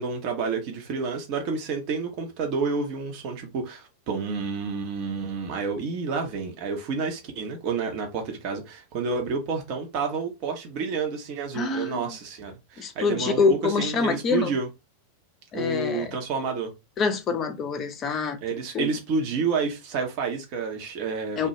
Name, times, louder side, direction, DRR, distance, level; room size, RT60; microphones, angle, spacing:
voice 1, 0.0-14.7 15.5-16.7 18.4-21.5, right 4 dB, 40° right, 0.7 m, -29 dB
voice 2, 11.5-12.0 12.8-14.5 15.5-16.1 17.0-18.4 18.7-18.9 21.4-21.5, left 4 dB, 30° left, 0.5 m, -25 dB
2.2 x 2.1 x 2.7 m
figure-of-eight pair, 90°, 0 cm